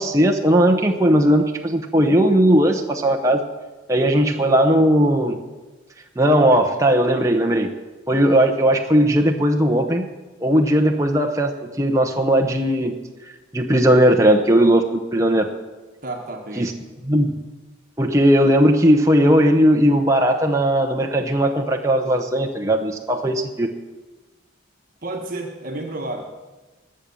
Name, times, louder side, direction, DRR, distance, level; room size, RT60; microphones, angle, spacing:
voice 1, 0.0-3.4 3.9-5.4 6.2-7.7 8.1-10.1 10.4-11.5 11.8-12.9 13.5-15.5 16.6-16.7 17.1-17.3 18.0-23.7, equal, 15° right, 2 dB, 0.8 m, -17 dB
voice 2, 16.0-16.7 25.0-26.3, right 2 dB, 45° right, 2 dB, 1.3 m, -31 dB
20.5 x 7.7 x 6.9 m, 1.2 s
head